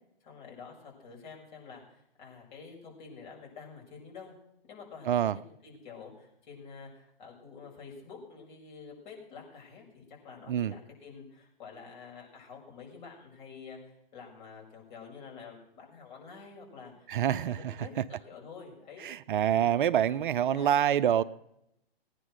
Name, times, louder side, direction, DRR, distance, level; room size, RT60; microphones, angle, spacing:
voice 1, 0.2-4.3 4.6-5.3 5.6-17.9 18.3-19.0 19.5-19.8 20.1-21.3, left 5 dB, 50° left, -1 dB, 6.8 m, -48 dB
voice 2, 5.1-5.4 10.5-10.7 17.1-17.7 19.0-21.2, right 10 dB, 55° right, 13 dB, 0.6 m, -26 dB
19.0 x 9.9 x 6.4 m, 0.79 s
hypercardioid pair, 135°, 31 cm